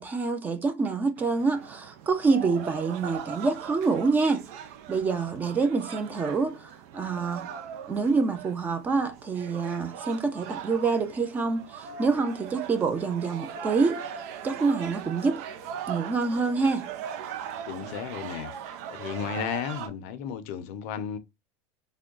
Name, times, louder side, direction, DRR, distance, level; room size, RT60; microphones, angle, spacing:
voice 1, 0.0-4.4 4.9-7.5 7.9-14.0 14.4-15.4 15.9-16.9, right 4 dB, 20° right, 0.6 m, -26 dB
sound 1, 1.2-19.9, right 8 dB, 70° right, 0.5 m, -40 dB
voice 2, 17.7-18.5 18.9-21.2, left 8 dB, 70° left, 0.6 m, -34 dB
3.6 x 2.2 x 3.7 m
supercardioid pair, 140°, 8 cm